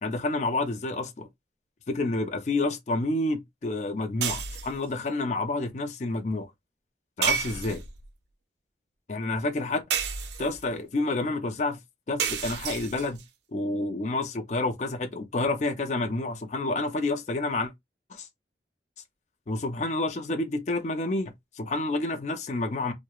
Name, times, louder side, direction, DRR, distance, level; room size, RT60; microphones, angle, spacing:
voice 1, 0.0-1.3 1.9-6.5 7.2-7.8 9.1-9.8 10.4-11.8 12.1-13.2 13.5-17.7 18.1-18.3 19.5-22.9, left 2 dB, 40° left, 0.4 m, -29 dB
sound 1, 4.2-4.8 7.2-8.1 9.9-10.7 12.2-13.2, right 7 dB, 75° right, 0.4 m, -30 dB
2.8 x 2.0 x 2.3 m
head